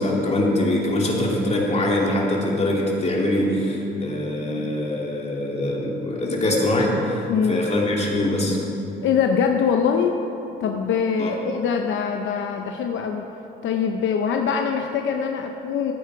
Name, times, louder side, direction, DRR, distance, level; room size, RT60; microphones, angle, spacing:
voice 1, 0.0-8.6 11.2-11.4, left 1 dB, 35° left, -2 dB, 2.6 m, -23 dB
voice 2, 7.3-7.7 9.0-10.2 10.6-13.2 13.6-15.9, left 6 dB, 75° left, 4 dB, 0.7 m, -23 dB
14.0 x 9.3 x 4.7 m, 2.9 s
cardioid pair, 90°, 20 cm